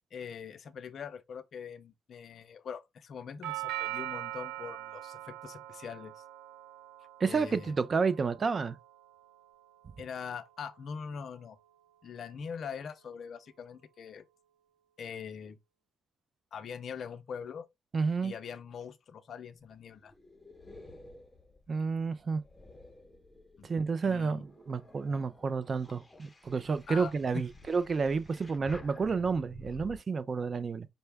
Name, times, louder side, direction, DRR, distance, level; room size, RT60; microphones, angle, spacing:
voice 1, 0.1-6.2 7.2-7.8 10.0-11.6 12.0-14.2 15.0-15.6 16.5-17.7 18.2-20.1 23.6-23.7 24.0-24.4 26.9-27.5, left 6 dB, 55° left, 0.5 m, -42 dB
Doorbell, 3.4-11.5, right 15 dB, 85° right, 0.7 m, -43 dB
voice 2, 7.2-8.8 17.9-18.3 21.7-22.4 23.6-30.9, right 5 dB, 40° right, 0.4 m, -30 dB
sound 1, 19.6-23.8 24.3-30.0, left 2 dB, 15° left, 0.9 m, -53 dB
5.3 x 2.3 x 3.4 m
cardioid pair, 90°, 0 cm